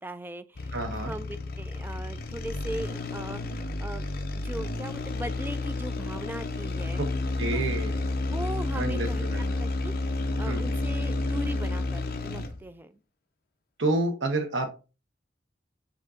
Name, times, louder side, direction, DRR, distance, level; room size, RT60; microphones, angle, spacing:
voice 1, 0.0-4.1 4.3-7.0 7.5-7.7 8.3-9.3 9.6-13.0, right 1 dB, 10° right, 0.3 m, -39 dB
sound 1, 0.6-12.7, left 2 dB, 55° left, 0.6 m, -31 dB
voice 2, 0.7-1.1 7.0-7.1 7.4-8.1 8.7-9.5 10.5-10.7 13.8-14.7, right 2 dB, 85° right, 1.1 m, -29 dB
7.2 x 2.6 x 2.5 m
head